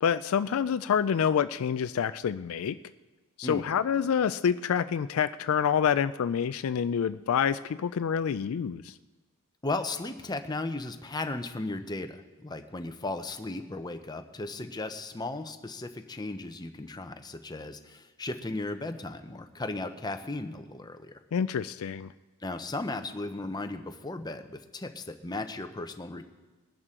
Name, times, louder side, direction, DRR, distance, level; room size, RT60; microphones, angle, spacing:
voice 1, 0.0-2.8 3.4-8.9 21.3-22.1, left 7 dB, 70° left, 13 dB, 0.4 m, -27 dB
voice 2, 9.6-21.2 22.4-26.3, left 2 dB, 20° left, 7 dB, 0.7 m, -36 dB
21.0 x 11.0 x 3.8 m, 1.2 s
head